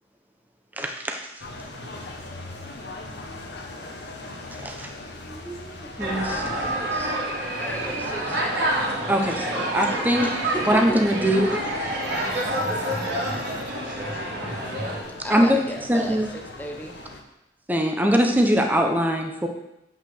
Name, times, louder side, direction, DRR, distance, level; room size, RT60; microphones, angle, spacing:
voice 1, 0.8-1.2 4.6-4.9 6.0-6.4 9.1-10.3 10.7-11.6 15.3-15.6 15.9-16.3 17.7-19.5, equal, 10° right, 3 dB, 0.9 m, -22 dB
sound 1, 1.4-17.2, left 2 dB, 65° left, 1.3 m, -41 dB
voice 2, 5.3-5.9 6.6-7.2 7.5-9.0 9.3-11.5 15.0-16.9, right 1 dB, 10° left, 2 dB, 1.2 m, -36 dB
sound 2, 6.0-15.0, right 1 dB, 65° right, 2.5 m, -28 dB
voice 3, 12.4-14.5, equal, 30° right, -3 dB, 2.1 m, -41 dB
8.4 x 5.8 x 6.1 m, 0.89 s
head